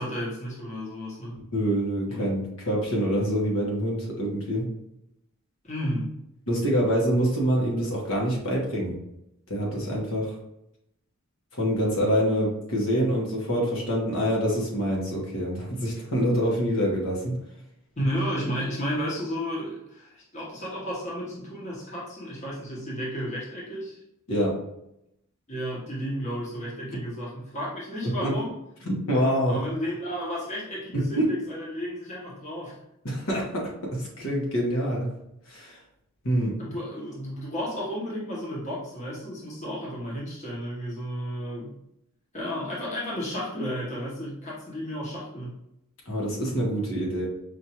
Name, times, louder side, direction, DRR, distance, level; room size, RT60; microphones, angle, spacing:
voice 1, 0.0-1.4 2.1-2.3 5.6-6.1 18.0-24.0 25.5-28.5 29.5-32.8 36.6-41.7 42.3-45.5, equal, 35° left, -5 dB, 1.0 m, -32 dB
voice 2, 1.5-4.7 6.5-8.9 9.5-10.3 11.5-17.4 24.3-24.5 28.0-28.3 28.8-29.6 30.9-31.3 33.0-35.1 35.5-35.8 36.2-36.5 46.1-47.3, equal, 75° left, -3 dB, 1.3 m, -26 dB
5.1 x 2.6 x 2.9 m, 0.82 s
head